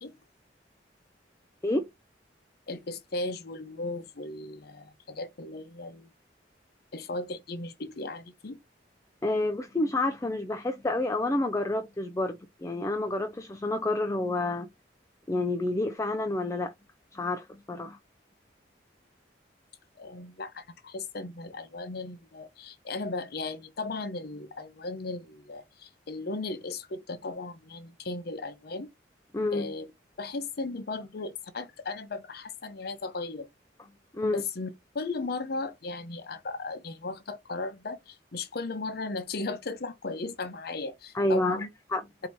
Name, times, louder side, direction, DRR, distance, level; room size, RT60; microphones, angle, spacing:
voice 1, 2.7-6.1 6.9-8.6 20.0-28.9 29.5-29.9 30.2-33.5 34.3-41.7, left 3 dB, 60° left, 0.7 m, -36 dB
voice 2, 9.2-14.7 15.3-16.7 17.1-18.0 29.3-29.7 34.1-34.4 41.1-41.6 41.9-42.0, left 2 dB, 15° left, 0.4 m, -29 dB
4.6 x 2.8 x 4.1 m
head